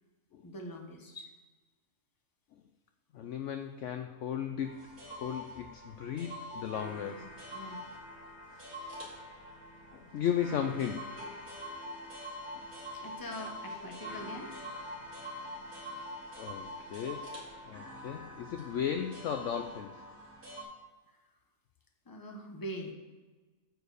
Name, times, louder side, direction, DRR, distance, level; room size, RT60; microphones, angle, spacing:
voice 1, 0.4-1.3 6.5-6.7 7.0-7.2 7.5-7.8 8.8-8.9 12.9-14.5 22.1-22.9, equal, 15° left, 3 dB, 0.9 m, -43 dB
voice 2, 3.1-7.2 9.9-11.4 12.5-12.7 16.4-17.3 17.6-19.9, left 8 dB, 65° left, 7 dB, 0.8 m, -36 dB
sound 1, 4.6-20.6, equal, 45° right, 2.7 m, -45 dB
9.3 x 4.7 x 6.5 m, 1.3 s
omnidirectional pair, 1.6 m